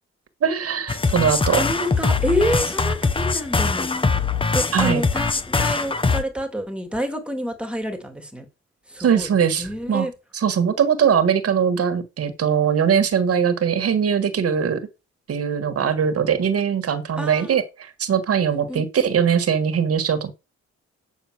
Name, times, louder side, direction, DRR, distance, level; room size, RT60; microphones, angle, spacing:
voice 1, 0.4-1.6 4.7-5.0 9.0-10.1 10.3-14.9 15.3-20.3, right 7 dB, 55° right, 1.6 m, -21 dB
sound 1, 0.9-6.2, left 4 dB, 20° left, 0.7 m, -22 dB
voice 2, 1.6-3.9 4.5-8.5 8.9-9.3 9.6-10.1 17.2-17.6 18.5-18.8, equal, 5° right, 2.1 m, -27 dB
8.7 x 6.8 x 6.0 m
wide cardioid pair, 170°, 29 cm